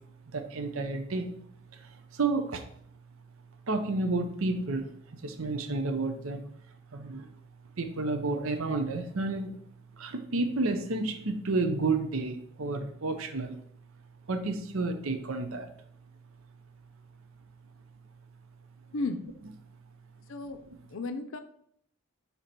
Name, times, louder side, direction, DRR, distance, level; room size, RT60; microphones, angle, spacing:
voice 1, 0.3-1.3 1.7-2.6 3.7-4.9 5.1-6.4 6.9-7.3 7.8-9.6 10.0-13.6 14.3-15.7, right 3 dB, 75° right, 7 dB, 0.7 m, -31 dB
voice 2, 20.9-21.4, left 3 dB, 65° left, 9 dB, 0.6 m, -33 dB
7.0 x 3.0 x 5.2 m, 0.66 s
head